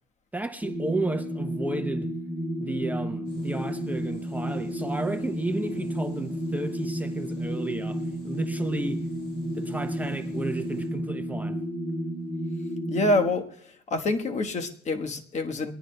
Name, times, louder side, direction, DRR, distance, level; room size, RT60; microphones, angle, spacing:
voice 1, 0.3-2.1 2.6-9.0 9.5-11.6, right 2 dB, 10° right, 0.7 m, -32 dB
sound 1, 0.6-13.3, equal, 20° left, 2.5 m, -32 dB
sound 2, 3.2-10.9, left 3 dB, 75° left, 8.0 m, -49 dB
voice 2, 12.9-13.4 13.9-15.7, left 2 dB, 45° left, 1.3 m, -26 dB
22.0 x 18.0 x 2.2 m
cardioid pair, 110°, 17 cm